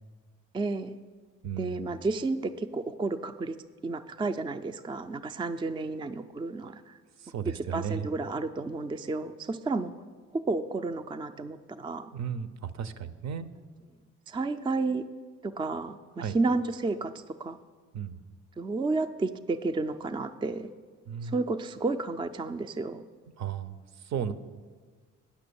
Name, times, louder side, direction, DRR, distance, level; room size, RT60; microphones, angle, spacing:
voice 1, 0.5-1.0 1.6-3.6 3.8-7.0 7.5-9.9 10.3-12.1 14.3-15.0 15.4-17.6 18.6-20.7 21.2-23.0, right 3 dB, 15° right, 9 dB, 0.4 m, -31 dB
voice 2, 1.4-1.9 7.2-8.1 12.1-13.5 16.2-16.4 17.9-18.2 21.1-21.4 23.4-23.8 24.0-24.3, right 7 dB, 60° right, 13 dB, 0.6 m, -34 dB
9.9 x 6.0 x 6.9 m, 1.5 s
cardioid pair, 90°, 30 cm